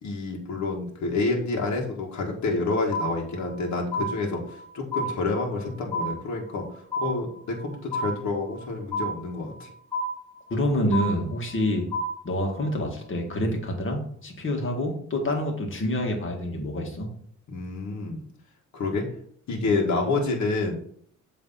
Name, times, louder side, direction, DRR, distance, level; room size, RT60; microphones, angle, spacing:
voice 1, 0.0-6.6 7.0-9.7 17.5-18.2 18.7-19.1 19.5-20.8, left 3 dB, 65° left, -1 dB, 1.7 m, -28 dB
sound 1, 2.9-3.6 3.9-4.7 4.9-5.7 5.9-6.7 6.9-7.7 7.9-8.7 8.9-9.7 9.9-10.7 10.9-11.7 11.9-12.7, equal, 10° left, 2.6 m, -31 dB
voice 2, 10.5-11.8 12.2-17.1, left 1 dB, 40° left, 2 dB, 2.0 m, -27 dB
8.0 x 3.3 x 5.6 m, 0.62 s
cardioid pair, 90°, 30 cm